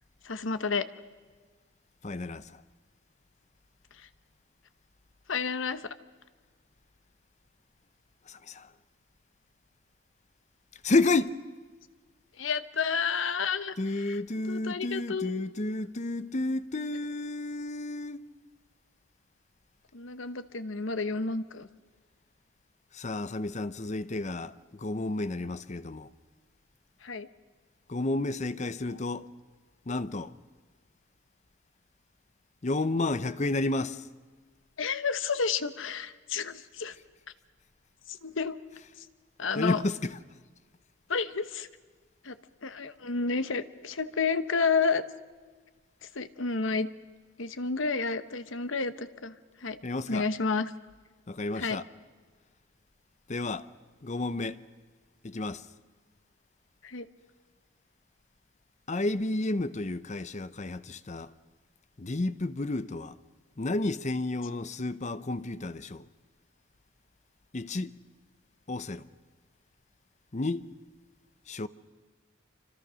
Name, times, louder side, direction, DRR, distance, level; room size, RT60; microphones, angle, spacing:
voice 1, 0.2-0.9 5.3-5.9 12.4-14.2 14.5-15.5 19.9-21.7 27.0-27.3 34.8-36.9 38.1-38.6 39.0-39.1 39.4-39.8 41.1-41.7 42.2-42.4 42.6-45.0 46.0-46.9 47.4-49.3 49.6-49.8 50.1-50.7 51.5-51.8 56.8-57.1, left 5 dB, 70° left, 1.1 m, -30 dB
voice 2, 2.0-2.6 8.3-8.7 10.8-11.4 13.8-18.2 22.9-24.5 24.8-26.1 27.9-29.3 29.9-30.3 32.6-34.0 39.5-40.2 49.8-50.3 51.3-51.8 53.3-53.7 54.0-54.6 55.2-55.6 58.9-61.3 62.0-63.1 63.6-66.0 67.5-68.0 68.7-69.1 70.3-70.6 71.5-71.7, left 2 dB, 35° left, 0.7 m, -31 dB
27.0 x 25.5 x 6.3 m
head